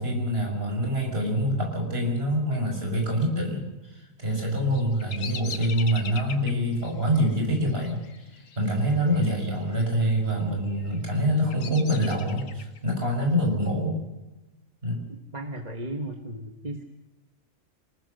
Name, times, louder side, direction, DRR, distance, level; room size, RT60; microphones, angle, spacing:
voice 1, 0.0-3.7 3.9-8.0 8.6-14.0 14.8-15.1, equal, 45° right, 1 dB, 6.1 m, -25 dB
Bird vocalization bird call bird song, 4.3-9.4 9.6-10.2 10.8-12.8, left 6 dB, 75° left, 1.5 m, -41 dB
voice 2, 15.3-16.8, right 1 dB, 30° right, 4 dB, 1.5 m, -35 dB
28.0 x 19.0 x 6.6 m, 1.0 s
omnidirectional pair, 1.4 m